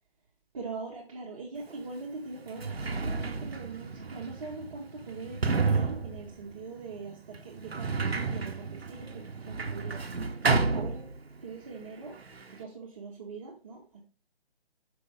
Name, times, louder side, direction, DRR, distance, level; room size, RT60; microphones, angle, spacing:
voice 1, 0.5-10.0 10.7-11.1 11.4-12.2 12.5-14.0, right 4 dB, 35° right, -2 dB, 1.2 m, -42 dB
Sliding door, 1.7-1.8 2.4-11.5 11.8-12.6, right 4 dB, 75° right, 0.9 m, -31 dB
5.3 x 5.3 x 3.4 m, 0.36 s
figure-of-eight pair, 145°, 31 cm